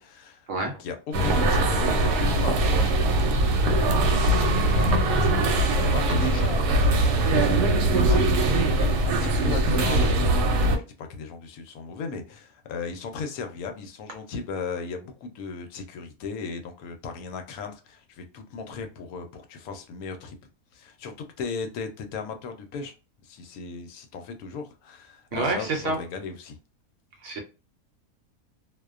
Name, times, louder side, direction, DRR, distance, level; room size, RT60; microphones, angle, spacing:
voice 1, 0.0-20.4 20.7-22.9 23.2-26.6, left 5 dB, 75° left, 1.0 m, -37 dB
sound 1, 1.1-10.8, right 1 dB, 90° right, 1.1 m, -21 dB
voice 2, 25.3-26.0 27.2-27.4, right 3 dB, 65° right, 0.8 m, -28 dB
2.5 x 2.1 x 2.3 m
omnidirectional pair, 1.6 m